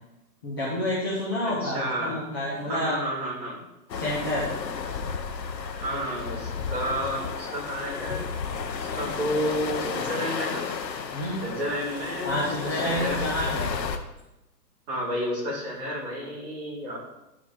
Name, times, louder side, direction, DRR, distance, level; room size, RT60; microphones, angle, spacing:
voice 1, 0.4-3.0 3.9-4.5 11.1-11.4 12.2-13.7, left 1 dB, 15° left, -7 dB, 0.7 m, -29 dB
voice 2, 1.4-2.2 2.6-3.6 5.8-8.3 8.8-10.6 11.4-13.3 14.9-17.0, equal, 20° right, -8 dB, 2.9 m, -31 dB
sound 1, 3.9-14.0, left 5 dB, 90° left, 1.0 m, -32 dB
11.5 x 4.7 x 3.6 m, 0.96 s
hypercardioid pair, 160°, 49 cm